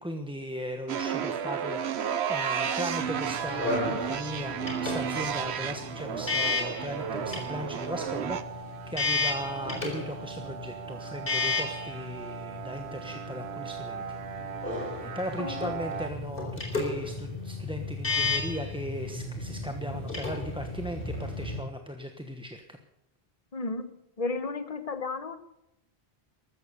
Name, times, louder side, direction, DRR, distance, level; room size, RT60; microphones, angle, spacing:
voice 1, 0.0-14.0 15.0-22.8, equal, 5° right, 5 dB, 1.0 m, -37 dB
sound 1, 0.9-16.1, right 8 dB, 85° right, 1.2 m, -34 dB
sound 2, 3.0-21.6, left 3 dB, 60° left, 4.3 m, -34 dB
voice 2, 15.4-15.7 23.5-25.4, left 3 dB, 35° left, 11 dB, 1.2 m, -33 dB
14.0 x 14.0 x 6.8 m, 0.86 s
omnidirectional pair, 1.1 m